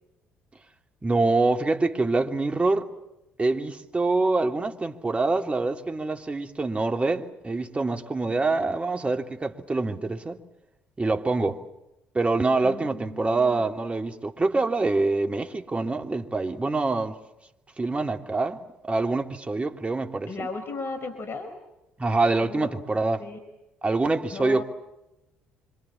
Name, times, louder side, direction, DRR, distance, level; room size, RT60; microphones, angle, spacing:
voice 1, 1.0-2.9 3.4-10.4 11.0-11.6 12.1-17.2 17.8-20.3 22.0-23.2 23.8-24.6, right 3 dB, 25° right, 4 dB, 3.1 m, -25 dB
voice 2, 8.3-8.7 12.6-13.6 20.3-21.5 22.4-22.8 23.2-23.4 24.3-24.6, left 3 dB, 45° left, 8 dB, 4.3 m, -36 dB
26.0 x 26.0 x 7.2 m, 0.90 s
hypercardioid pair, 55°, 5 cm